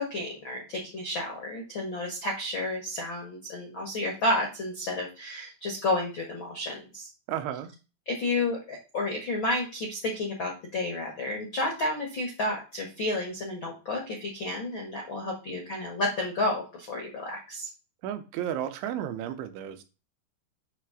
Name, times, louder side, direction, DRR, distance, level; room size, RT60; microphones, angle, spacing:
voice 1, 0.0-7.1 8.0-17.7, left 2 dB, 80° left, 0 dB, 1.0 m, -31 dB
voice 2, 7.3-7.7 18.0-19.8, right 10 dB, 90° right, 7 dB, 3.3 m, -33 dB
8.6 x 3.3 x 6.3 m, 0.31 s
omnidirectional pair, 5.2 m